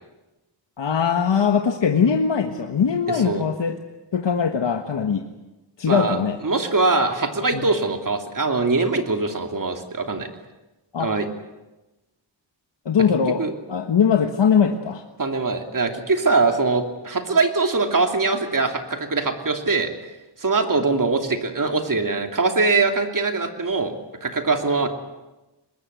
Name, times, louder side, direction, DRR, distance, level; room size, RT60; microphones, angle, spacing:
voice 1, 0.8-3.8 4.1-5.2 5.8-6.4 7.5-7.6 10.9-11.1 12.8-15.0, left 6 dB, 80° left, 4 dB, 1.5 m, -21 dB
voice 2, 3.1-3.5 5.9-6.2 6.4-10.3 11.0-11.3 13.4-13.5 15.2-19.9 20.4-23.9 24.2-24.9, right 3 dB, 45° right, 4 dB, 3.0 m, -22 dB
24.5 x 20.5 x 8.2 m, 1.1 s
wide cardioid pair, 100°, 43 cm